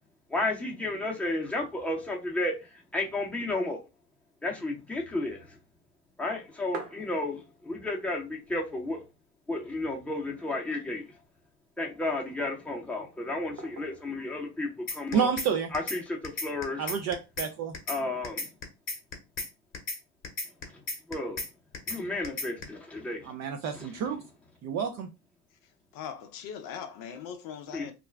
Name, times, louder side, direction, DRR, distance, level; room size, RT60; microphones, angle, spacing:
voice 1, 0.3-3.8 4.4-5.6 6.2-9.0 9.5-11.1 11.8-15.3 15.7-16.8 17.9-18.5 20.7-20.8 21.1-21.4 21.9-23.3 23.7-23.9 27.7-27.9, left 2 dB, 5° left, 0.7 m, -32 dB
sound 1, 6.4-7.7 8.1-8.2 8.4-9.2 9.6-9.7 10.2-11.0 11.7-12.4 13.6-14.2 15.3-15.8, right 3 dB, 75° right, 0.9 m, -46 dB
sound 2, 14.9-15.5 15.7-16.0 16.2-17.5 17.7-18.0 18.2-19.5 19.7-20.0 20.2-21.5 21.7-22.0 22.2-22.6, left 3 dB, 25° left, 1.0 m, -34 dB
voice 2, 15.1-15.7 16.8-17.7 23.2-24.2 24.6-25.1, right 7 dB, 35° right, 0.4 m, -29 dB
voice 3, 25.6-27.9, left 8 dB, 45° left, 0.5 m, -41 dB
2.4 x 2.1 x 3.3 m
hypercardioid pair, 90°, 48 cm